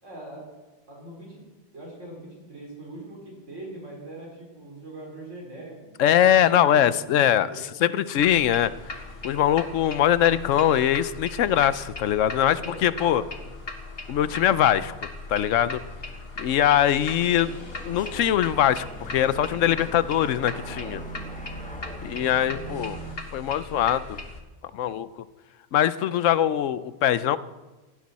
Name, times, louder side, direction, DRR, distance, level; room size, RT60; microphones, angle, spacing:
voice 1, 0.0-0.5 0.9-1.4 1.7-7.6 12.5-13.5, right 1 dB, 80° right, -2 dB, 4.4 m, -42 dB
voice 2, 6.0-7.5 7.8-13.2 14.1-14.9 15.3-15.8 16.4-17.5 17.8-21.0 22.0-23.0 23.3-24.2 24.7-25.1 25.7-27.4, left 10 dB, 90° left, 15 dB, 1.0 m, -22 dB
sound 1, 8.2-24.4, left 2 dB, 55° left, 1.8 m, -39 dB
sound 2, 16.4-23.2, right 3 dB, 5° left, 1.4 m, -42 dB
17.5 x 16.5 x 4.2 m, 1.2 s
omnidirectional pair, 1.3 m